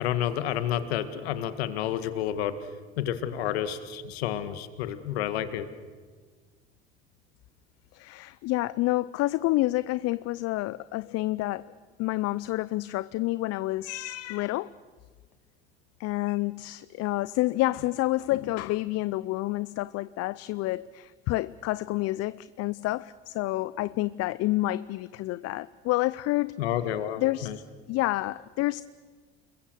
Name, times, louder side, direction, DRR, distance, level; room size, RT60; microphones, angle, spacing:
voice 1, 0.0-2.6 3.0-5.7 26.6-27.6, left 11 dB, 75° left, 1.8 m, -30 dB
voice 2, 7.9-11.7 12.0-14.7 16.0-26.6 27.2-27.5 27.9-28.8, left 18 dB, 50° left, 0.6 m, -29 dB
29.0 x 22.0 x 6.8 m
hypercardioid pair, 65°, 32 cm